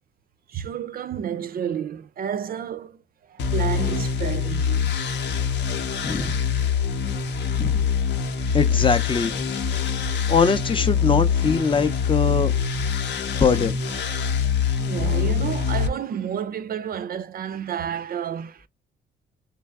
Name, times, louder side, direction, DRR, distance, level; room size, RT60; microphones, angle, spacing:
voice 1, 0.5-3.0 3.5-4.8 13.3-13.4 14.4-14.5 14.8-18.6, right 8 dB, 50° right, 0.4 m, -30 dB
sound 1, 3.4-15.9, left 6 dB, 60° left, 0.7 m, -24 dB
voice 2, 6.0-6.4 7.6-7.9 8.5-9.4 10.3-12.5 13.3-13.8, left 5 dB, 25° left, 0.5 m, -22 dB
3.3 x 3.1 x 3.5 m
cardioid pair, 90°, 20 cm